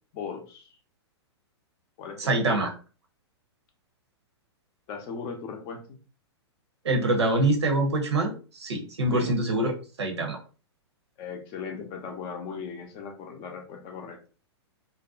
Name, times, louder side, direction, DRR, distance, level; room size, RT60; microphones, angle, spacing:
voice 1, 0.1-0.7 2.0-2.2 2.5-2.6 4.9-6.0 9.1-9.3 11.2-14.2, left 6 dB, 35° left, 4 dB, 0.5 m, -37 dB
voice 2, 2.2-2.7 6.8-9.7 10.0-10.4, right 2 dB, 75° right, 2 dB, 0.8 m, -25 dB
2.6 x 2.1 x 2.4 m, 0.35 s
figure-of-eight pair, 110°, 14 cm